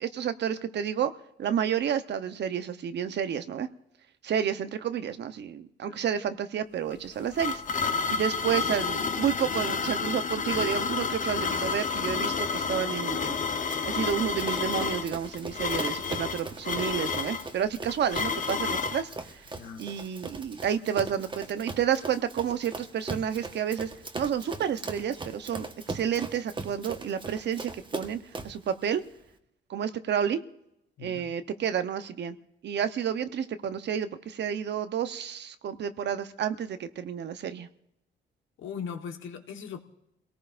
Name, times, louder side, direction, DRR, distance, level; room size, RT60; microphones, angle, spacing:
voice 1, 0.0-1.1 1.4-3.7 4.2-7.6 8.1-13.4 13.8-19.4 19.8-28.2 28.4-29.0 29.7-30.4 31.0-32.4 32.6-37.7, right 8 dB, 60° right, 10 dB, 0.9 m, -30 dB
sound 1, 6.9-19.1, left 5 dB, 40° left, 0.9 m, -30 dB
Run, 13.7-28.6, right 3 dB, 25° right, 1.3 m, -40 dB
voice 2, 19.5-19.8 31.0-31.3 38.6-39.8, left 7 dB, 75° left, 5 dB, 1.4 m, -39 dB
28.5 x 18.5 x 2.6 m, 0.81 s
cardioid pair, 90°, 20 cm